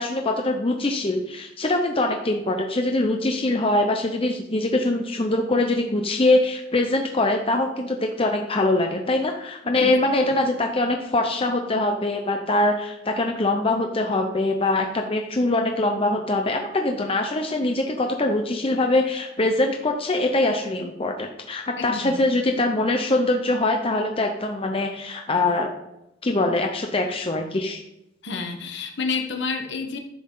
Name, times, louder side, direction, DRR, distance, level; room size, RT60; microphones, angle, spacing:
voice 1, 0.0-25.7 26.2-27.8, left 2 dB, 30° left, 3 dB, 0.8 m, -23 dB
voice 2, 9.7-10.3 21.8-22.1 28.2-30.0, left 4 dB, 65° left, 4 dB, 1.4 m, -30 dB
11.0 x 7.5 x 4.0 m, 0.87 s
head